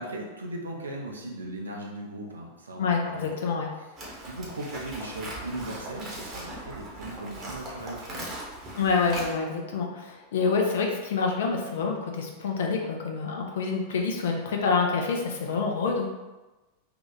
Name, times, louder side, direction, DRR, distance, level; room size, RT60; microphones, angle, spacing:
voice 1, 0.0-3.4 3.8-3.9 4.2-8.2, right 1 dB, 75° right, -1 dB, 0.6 m, -38 dB
voice 2, 2.8-3.7 8.7-16.1, left 4 dB, 60° left, 1 dB, 0.6 m, -27 dB
Livestock farm animals working animals, 4.0-9.3, right 1 dB, 30° right, 1.0 m, -39 dB
2.8 x 2.4 x 3.9 m, 1.1 s
figure-of-eight pair, 90°, 0 cm